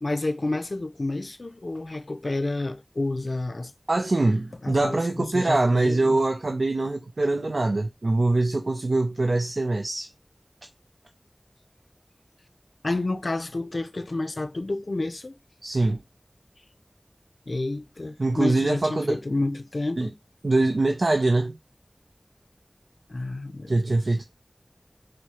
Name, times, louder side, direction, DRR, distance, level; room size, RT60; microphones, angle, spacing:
voice 1, 0.0-3.7 4.6-6.2 12.8-15.4 15.9-16.0 17.5-20.1 23.1-23.7, left 2 dB, 80° left, 0.4 m, -30 dB
voice 2, 3.9-10.1 15.6-16.0 18.2-19.2 20.0-20.1 20.4-21.6 23.7-24.2, right 2 dB, 90° right, 0.3 m, -23 dB
4.6 x 2.0 x 2.8 m
wide cardioid pair, 50°, 0 cm